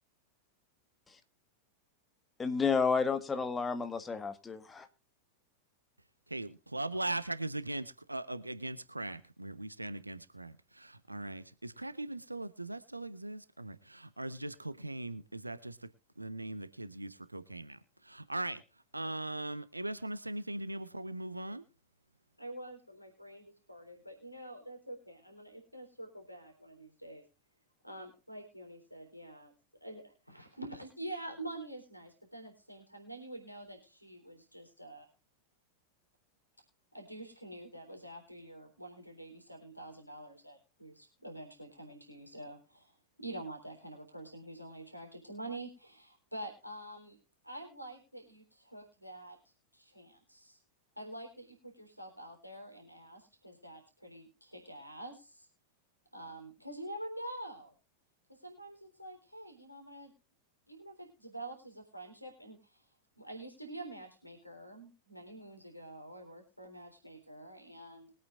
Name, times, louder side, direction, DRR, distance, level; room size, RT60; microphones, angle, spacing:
voice 1, 2.4-4.9, left 5 dB, 15° left, 10 dB, 1.5 m, -31 dB
voice 2, 6.3-15.9 16.2-18.6 18.9-21.6, right 2 dB, 85° right, 14 dB, 0.9 m, -40 dB
voice 3, 22.4-27.2 27.8-29.5 29.8-35.1 36.9-42.9 43.2-47.2 47.4-49.4 49.7-50.6 51.0-55.5 56.1-57.8 58.4-60.1 60.7-62.8 63.2-68.1, right 1 dB, 90° left, 4 dB, 3.6 m, -47 dB
22.5 x 8.7 x 2.5 m, 0.31 s
figure-of-eight pair, 90°, 0 cm